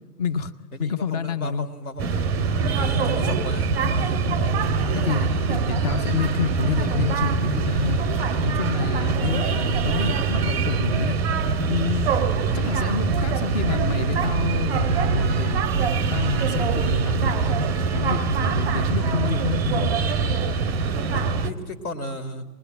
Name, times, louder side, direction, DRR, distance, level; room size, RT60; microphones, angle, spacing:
voice 1, 0.2-0.5 0.8-1.7 3.3-3.4 4.2-4.6 4.9-8.0 8.4-11.2 11.6-12.1 12.5-15.6 16.1-17.3 17.9-19.9, left 5 dB, 25° left, 13 dB, 0.8 m, -28 dB
voice 2, 0.7-2.3 2.8-4.2 9.2-9.4 12.5-12.7 21.1-22.4, left 1 dB, 65° left, 7 dB, 2.8 m, -34 dB
sound 1, 2.0-21.5, right 5 dB, 5° right, 0.7 m, -23 dB
24.0 x 20.5 x 9.1 m, 1.2 s
hypercardioid pair, 140°, 48 cm